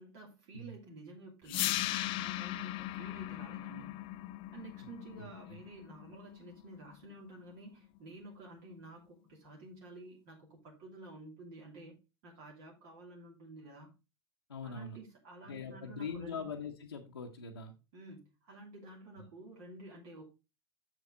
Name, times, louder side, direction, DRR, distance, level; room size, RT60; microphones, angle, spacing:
voice 1, 0.0-4.0 4.5-12.0 12.2-13.9 14.6-16.4 17.9-20.2, right 2 dB, 55° right, -1 dB, 2.9 m, -51 dB
sound 1, 1.5-7.5, left 16 dB, 45° left, 0.5 m, -38 dB
voice 2, 5.2-5.6 14.5-15.0 15.4-17.7 19.2-19.3, left 5 dB, 85° left, 0 dB, 1.0 m, -42 dB
7.6 x 7.0 x 3.9 m, 0.28 s
hypercardioid pair, 85°, 13 cm